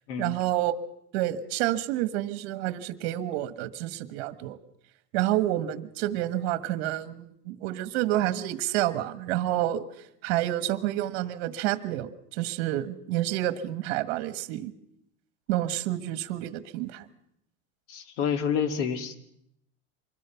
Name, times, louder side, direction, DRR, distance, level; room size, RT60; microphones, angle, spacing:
voice 1, 0.2-0.7 1.1-4.6 5.1-9.8 10.2-14.7 15.5-17.0, right 14 dB, 60° right, 12 dB, 1.4 m, -29 dB
voice 2, 17.9-19.2, left 7 dB, 80° left, 8 dB, 2.2 m, -28 dB
25.0 x 21.0 x 5.8 m, 0.76 s
supercardioid pair, 165°, 35 cm